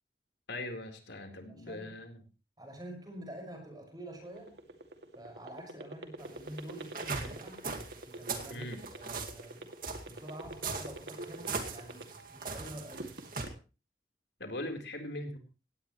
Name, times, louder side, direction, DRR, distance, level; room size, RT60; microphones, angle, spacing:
voice 1, 0.5-2.2 8.5-8.8 14.4-15.4, left 1 dB, 80° left, 5 dB, 4.1 m, -40 dB
voice 2, 1.5-2.0 2.6-4.5 5.1-7.6 8.0-9.7 10.0-13.1, right 1 dB, 20° right, 3 dB, 6.0 m, -47 dB
sound 1, 4.1-12.4 12.7-13.5, right 1 dB, 75° right, 2.5 m, -43 dB
sound 2, 6.2-13.5, right 4 dB, 50° right, 2.3 m, -40 dB
18.5 x 17.5 x 3.2 m, 0.33 s
head